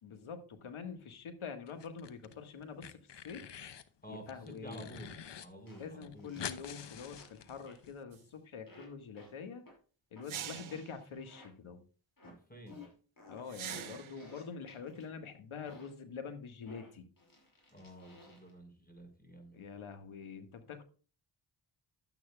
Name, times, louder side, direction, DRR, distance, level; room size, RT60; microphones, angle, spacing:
voice 1, 0.0-3.5 4.1-4.9 5.8-9.6 10.1-11.8 13.3-17.1 19.5-20.8, left 6 dB, 75° left, 8 dB, 1.7 m, -45 dB
sound 1, 1.7-2.3 2.6-3.9 4.3-5.5 5.7-5.8 6.0-7.9, left 8 dB, 55° left, 1.0 m, -46 dB
voice 2, 4.0-6.4 12.2-12.9 17.7-19.6, equal, 20° left, 5 dB, 4.9 m, -51 dB
sound 2, 5.7-5.9 6.2-6.6 7.2-7.4 7.7-7.9 8.7-8.9 9.2-9.3 9.7-9.8 10.2-10.3 10.7-10.9 11.2-11.5 12.2-12.4 12.7-15.1 15.7-15.9 16.7-18.5, left 2 dB, 40° left, 5.8 m, -56 dB
sound 3, 8.1-8.2 10.3-10.9 13.5-14.3, right 10 dB, 70° right, 1.1 m, -43 dB
12.0 x 9.2 x 2.3 m, 0.38 s
supercardioid pair, 40°, 50 cm